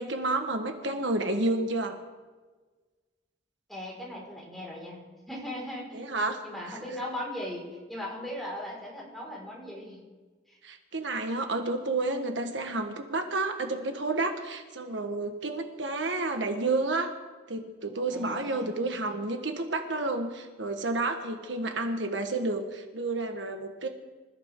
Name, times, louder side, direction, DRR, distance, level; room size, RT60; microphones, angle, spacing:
voice 1, 0.0-2.0 5.9-6.8 10.6-17.1 17.5-23.9, right 2 dB, 80° right, 5 dB, 1.5 m, -30 dB
voice 2, 3.7-5.0 5.3-6.1 6.4-10.0 10.5-10.6 18.1-18.7, left 1 dB, ahead, -5 dB, 5.0 m, -38 dB
26.0 x 14.5 x 3.8 m, 1.4 s
head